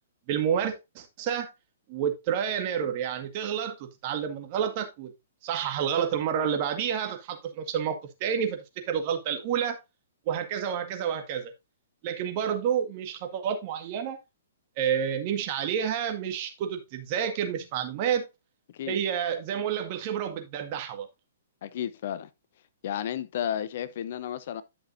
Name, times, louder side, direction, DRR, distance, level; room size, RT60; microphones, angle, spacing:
voice 1, 0.3-1.5 1.9-5.1 5.4-9.8 10.3-11.5 12.0-14.2 14.8-18.3 18.9-21.1, right 8 dB, 40° right, 1.8 m, -29 dB
voice 2, 21.6-22.3 22.8-24.6, left 10 dB, 55° left, 0.7 m, -32 dB
11.0 x 6.2 x 2.6 m
figure-of-eight pair, 120°, 0 cm